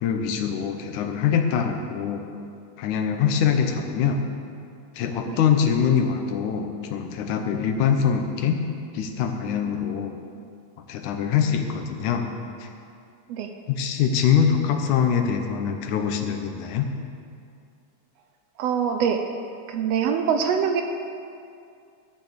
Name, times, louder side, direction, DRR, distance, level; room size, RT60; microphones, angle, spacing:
voice 1, 0.0-2.3 2.8-4.3 5.0-8.6 8.9-10.2 10.8-12.3 12.6-12.7 13.7-16.9, left 7 dB, 80° left, 5 dB, 2.4 m, -23 dB
voice 2, 18.6-19.2 19.7-20.8, right 7 dB, 75° right, 5 dB, 1.6 m, -23 dB
12.5 x 6.7 x 7.9 m, 2.4 s
omnidirectional pair, 3.5 m